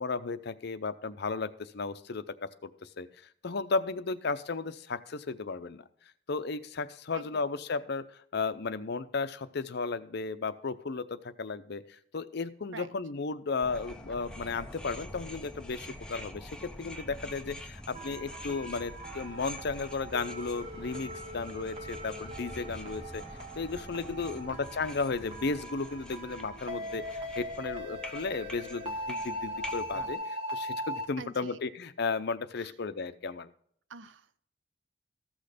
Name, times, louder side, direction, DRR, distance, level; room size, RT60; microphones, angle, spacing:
voice 1, 0.0-5.8 6.3-23.2 23.6-33.5, left 4 dB, 60° left, 12 dB, 0.6 m, -34 dB
sound 1, 13.6-30.1, left 1 dB, 5° left, 0.8 m, -46 dB
sound 2, 17.9-31.0, equal, 30° right, 1.9 m, -40 dB
voice 2, 31.2-31.6 32.6-32.8 33.9-34.4, right 4 dB, 70° right, 14 dB, 0.6 m, -46 dB
14.5 x 6.3 x 5.0 m, 0.63 s
head